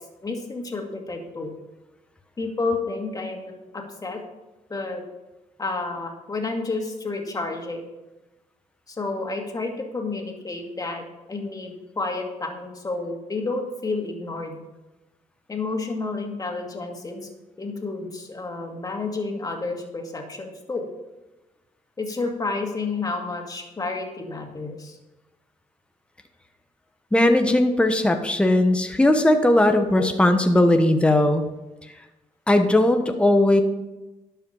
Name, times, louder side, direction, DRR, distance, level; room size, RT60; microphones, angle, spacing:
voice 1, 0.2-1.5 2.4-4.2 4.7-5.0 5.6-7.8 8.9-14.6 15.5-17.3 17.6-20.9 22.0-25.0 30.0-30.1, left 3 dB, 30° left, 2 dB, 2.3 m, -30 dB
voice 2, 27.1-31.4 32.5-33.6, left 1 dB, 10° left, 6 dB, 1.0 m, -18 dB
12.0 x 5.7 x 5.6 m, 1.1 s
cardioid pair, 75°, 13 cm